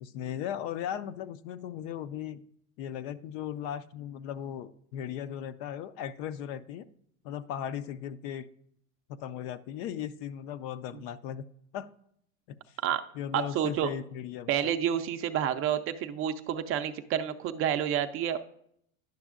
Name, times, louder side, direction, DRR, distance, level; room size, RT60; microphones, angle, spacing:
voice 1, 0.0-2.4 2.8-6.9 7.2-8.5 9.1-11.4 11.7-11.9 12.5-12.6 13.1-14.7, left 10 dB, 60° left, 13 dB, 0.5 m, -37 dB
voice 2, 13.3-13.9 14.5-18.4, right 9 dB, 35° right, 8 dB, 0.4 m, -29 dB
10.5 x 6.1 x 2.4 m, 0.69 s
supercardioid pair, 115°, 40 cm